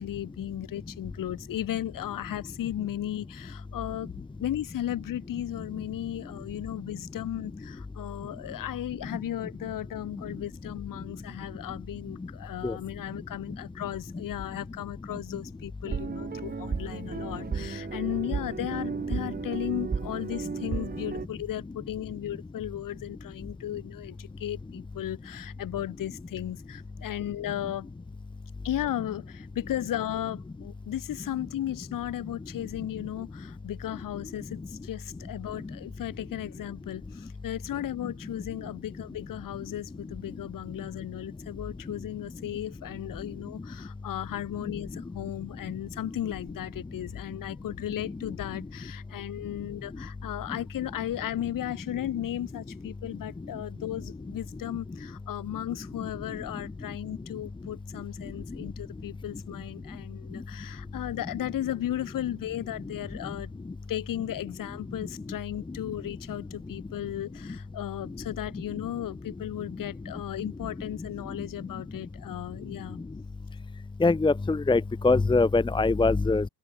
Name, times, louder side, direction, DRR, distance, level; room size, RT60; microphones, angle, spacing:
voice 1, 0.0-4.1 4.4-27.9 28.6-63.5 63.9-73.0, left 12 dB, 45° left, 3.2 m, -35 dB
sound 1, 15.9-21.3, right 5 dB, 20° right, 2.2 m, -33 dB
voice 2, 74.0-76.5, left 3 dB, 10° left, 1.3 m, -23 dB
open air
cardioid pair, 130°, 47 cm